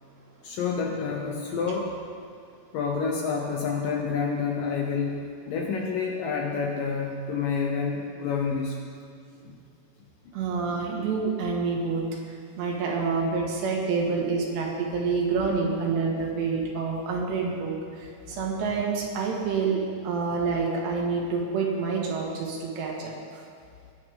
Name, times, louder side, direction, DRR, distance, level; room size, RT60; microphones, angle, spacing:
voice 1, 0.4-2.0 2.7-5.2 5.5-8.8 9.5-9.6 10.3-10.4 20.5-20.6, left 5 dB, 75° left, 0 dB, 2.1 m, -28 dB
voice 2, 10.3-12.0 12.6-23.1, right 4 dB, 90° right, -1 dB, 3.8 m, -27 dB
20.0 x 8.4 x 3.7 m, 2.4 s
omnidirectional pair, 4.8 m